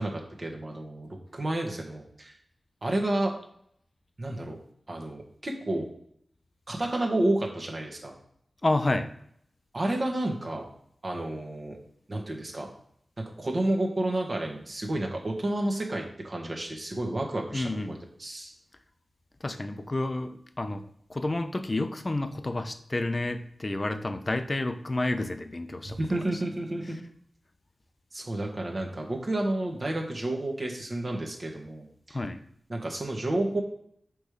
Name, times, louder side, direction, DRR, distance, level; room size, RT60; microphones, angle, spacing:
voice 1, 0.0-2.3 2.8-3.3 4.2-4.6 4.9-5.9 6.7-8.1 9.7-10.6 11.0-11.8 12.1-12.7 13.4-18.5 25.8-27.0 28.1-32.2 32.7-33.6, right 1 dB, 45° right, 1 dB, 1.3 m, -30 dB
voice 2, 8.6-9.1 17.5-18.0 19.4-20.8 21.1-26.2 32.1-32.4, left 2 dB, 35° left, 10 dB, 0.5 m, -30 dB
6.3 x 3.2 x 5.1 m, 0.68 s
wide cardioid pair, 80°, 0 cm